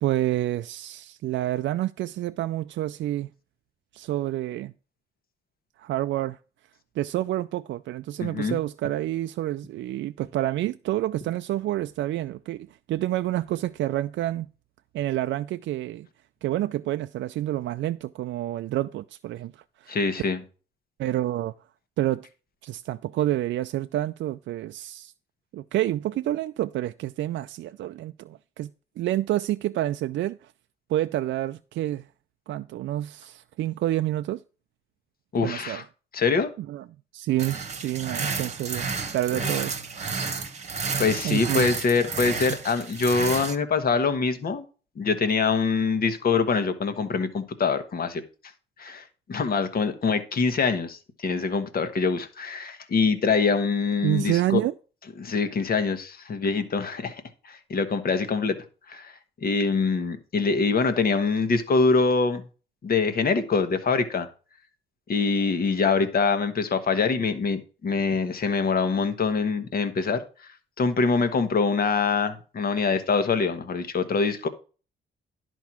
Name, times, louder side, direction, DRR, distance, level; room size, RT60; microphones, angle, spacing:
voice 1, 0.0-3.3 3.9-4.7 5.8-6.4 7.0-14.5 14.9-16.1 16.4-20.0 21.0-21.5 22.0-22.3 22.6-25.1 25.5-28.7 29.0-30.5 30.9-32.1 32.5-34.4 35.4-35.8 36.6-36.8 37.1-39.8 41.2-41.7 54.0-54.7, right 14 dB, 70° right, 0.4 m, -28 dB
voice 2, 8.2-8.6 19.9-20.4 35.3-35.8 36.1-36.5 41.0-44.6 45.0-48.2 48.8-54.6 55.2-58.6 58.9-59.1 59.4-62.4 62.8-64.3 65.1-70.5 70.8-74.5, left 4 dB, 50° left, 1.4 m, -24 dB
sound 1, 37.4-43.6, right 5 dB, 35° right, 1.2 m, -31 dB
11.0 x 4.6 x 5.9 m
cardioid pair, 90°, 20 cm